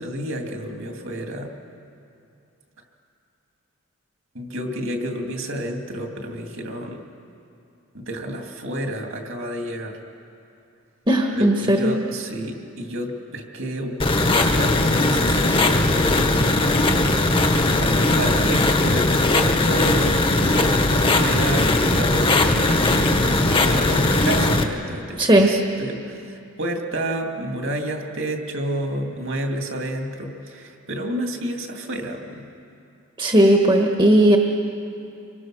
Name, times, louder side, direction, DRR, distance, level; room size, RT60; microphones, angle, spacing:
voice 1, 0.0-1.5 4.3-7.0 7.9-10.0 11.4-14.0 14.3-16.6 17.6-25.2 25.5-32.4, right 1 dB, 60° right, 2 dB, 2.5 m, -30 dB
voice 2, 11.1-11.9 25.2-25.5 33.2-34.4, right 1 dB, 20° right, 2 dB, 1.3 m, -16 dB
sound 1, 14.0-24.6, left 2 dB, 25° left, 1.3 m, -19 dB
27.5 x 23.5 x 6.3 m, 2.6 s
head